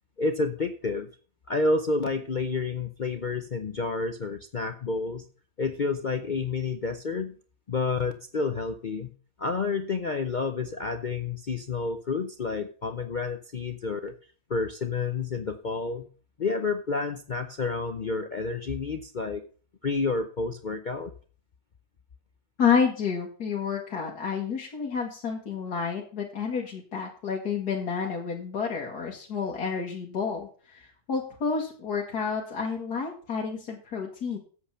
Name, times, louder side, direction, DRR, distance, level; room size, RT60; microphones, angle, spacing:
voice 1, 0.2-1.1 1.5-5.3 5.6-7.4 7.7-9.1 9.4-14.1 14.5-16.1 16.4-19.4 19.8-21.1, left 3 dB, 45° left, 7 dB, 0.6 m, -29 dB
voice 2, 22.6-34.4, left 6 dB, 80° left, -2 dB, 2.3 m, -29 dB
8.6 x 8.0 x 5.7 m, 0.41 s
omnidirectional pair, 1.6 m